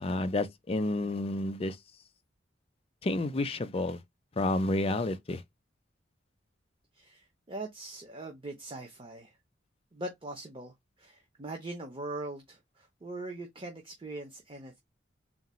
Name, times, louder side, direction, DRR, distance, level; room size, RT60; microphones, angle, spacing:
voice 1, 0.0-1.8 3.0-4.0 4.4-5.4, left 2 dB, 30° left, 0.5 m, -30 dB
voice 2, 6.9-9.4 9.9-14.8, right 2 dB, 30° right, 0.7 m, -41 dB
3.8 x 2.2 x 4.2 m
head